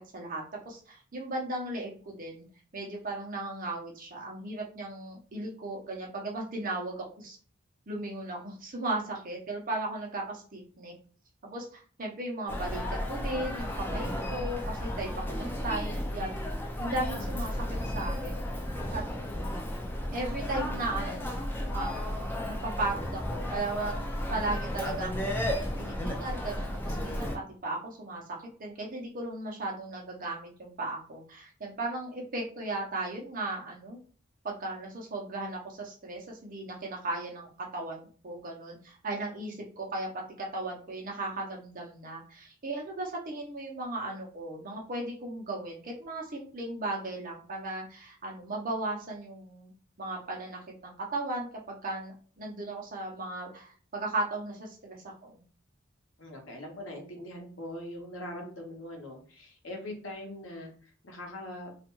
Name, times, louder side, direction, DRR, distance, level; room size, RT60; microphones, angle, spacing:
voice 1, 0.1-2.5 2.7-7.4 7.9-10.9 11.4-18.5 18.9-19.0 20.1-21.4 21.7-22.1 22.4-27.3 27.6-34.0 34.4-40.1 40.4-49.7 50.0-55.4, right 2 dB, 45° right, -1 dB, 0.6 m, -36 dB
Human voice, 12.5-27.4, left 1 dB, 10° left, 0.3 m, -33 dB
voice 2, 56.2-61.7, left 1 dB, 75° left, 1 dB, 0.8 m, -42 dB
2.4 x 2.2 x 2.9 m, 0.42 s
head